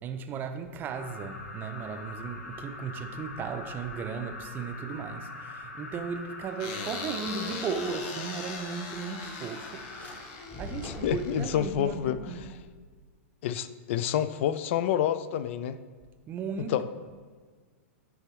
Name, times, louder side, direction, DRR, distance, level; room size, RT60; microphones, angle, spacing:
voice 1, 0.0-9.9 10.1-12.5 16.3-16.7, right 5 dB, 25° right, 0.5 m, -36 dB
sound 1, 0.9-10.2, left 2 dB, 85° left, 0.9 m, -43 dB
sound 2, 6.6-11.9, left 4 dB, 40° left, 0.9 m, -40 dB
Ship into hyperspace, 9.8-10.1 10.5-13.1, left 1 dB, 20° left, 0.9 m, -44 dB
voice 2, 10.8-12.2 12.5-12.6 13.4-15.8 16.7-16.8, left 10 dB, 60° left, 0.3 m, -28 dB
9.9 x 3.6 x 3.1 m
hypercardioid pair, 120°, 8 cm